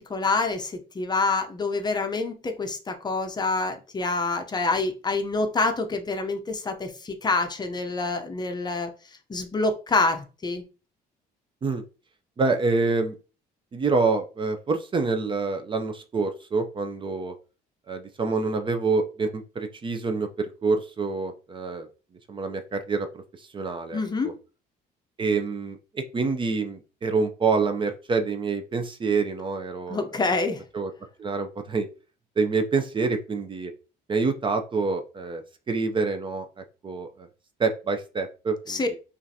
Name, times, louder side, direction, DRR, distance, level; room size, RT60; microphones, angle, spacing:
voice 1, 0.1-8.9 9.3-10.6 23.9-24.3 29.9-30.6 38.7-38.9, left 3 dB, 25° left, 7 dB, 0.7 m, -26 dB
voice 2, 12.4-13.2 13.7-17.3 17.9-21.9 22.3-24.3 25.2-30.0 30.7-30.9 31.2-31.9 32.4-33.7 34.1-35.4 35.7-36.5 36.8-37.3 37.6-39.0, right 4 dB, 30° right, 8 dB, 0.6 m, -27 dB
5.5 x 2.5 x 2.7 m, 0.34 s
cardioid pair, 110°, 17 cm